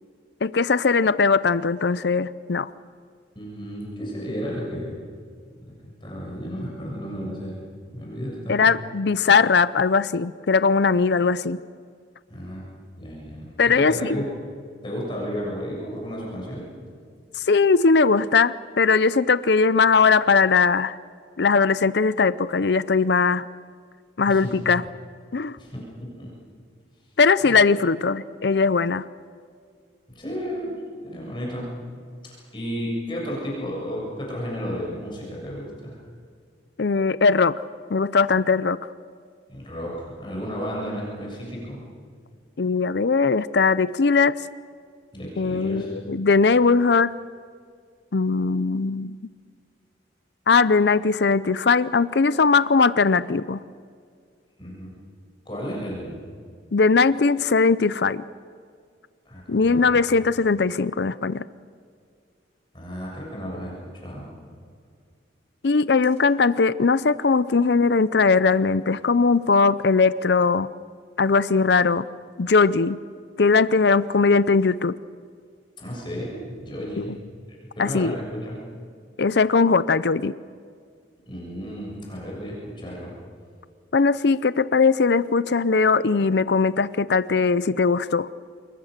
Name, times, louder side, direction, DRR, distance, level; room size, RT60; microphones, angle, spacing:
voice 1, 0.4-2.7 8.5-11.6 13.6-14.2 17.4-21.0 21.4-23.5 24.2-24.8 25.3-25.6 27.2-29.0 36.8-37.5 37.9-38.8 42.6-44.3 45.4-47.1 48.1-49.2 50.5-53.6 56.7-58.2 59.5-61.5 65.6-70.7 71.2-72.0 72.4-73.0 73.4-75.0 77.0-77.2 77.8-78.2 79.2-80.3 83.9-88.3, left 4 dB, 65° left, 16 dB, 0.5 m, -20 dB
voice 2, 3.4-5.0 6.0-7.6 7.9-8.7 12.3-12.7 12.9-13.5 13.7-14.2 14.8-16.7 24.2-24.5 25.6-25.7 26.2-26.3 27.4-27.5 30.1-30.7 31.0-31.7 32.3-36.0 39.5-41.8 45.1-45.9 54.6-54.9 55.5-56.2 59.3-60.0 62.7-64.3 75.8-77.2 77.8-78.6 81.3-83.1, equal, 25° left, -3 dB, 7.3 m, -33 dB
28.0 x 22.5 x 6.7 m, 2.1 s
head